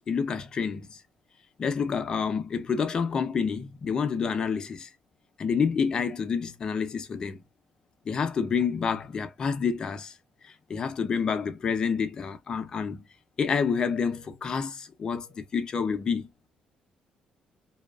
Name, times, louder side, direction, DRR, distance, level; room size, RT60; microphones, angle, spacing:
voice 1, 0.1-1.0 1.6-4.9 5.4-7.4 8.1-10.1 10.4-13.1 13.4-16.3, left 6 dB, 35° left, 0.5 m, -28 dB
2.7 x 2.3 x 2.3 m
cardioid pair, 145°, 2 cm